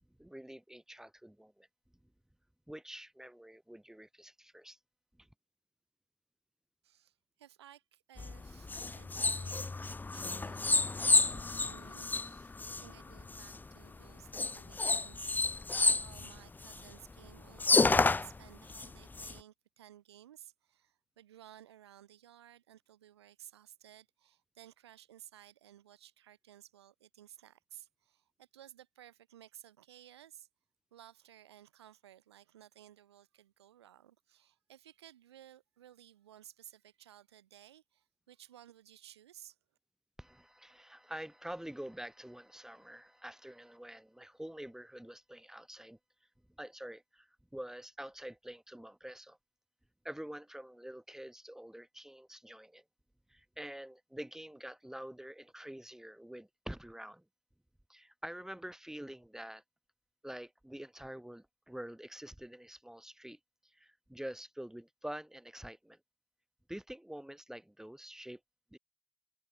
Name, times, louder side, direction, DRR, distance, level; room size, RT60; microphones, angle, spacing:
voice 1, 0.1-1.7 2.7-4.8 5.2-5.3 40.2-46.0 46.6-49.4 50.0-52.8 53.3-57.3 57.9-59.6 60.2-66.0 66.7-68.4 68.7-68.8, right 1 dB, 5° right, 5.2 m, -47 dB
voice 2, 6.8-9.7 10.1-30.5 30.9-39.6, right 11 dB, 85° right, 3.3 m, -57 dB
sound 1, 8.2-13.7 14.3-17.0 17.3-17.4 17.6-19.3, left 3 dB, 15° left, 0.5 m, -30 dB
hypercardioid pair, 65°, 13 cm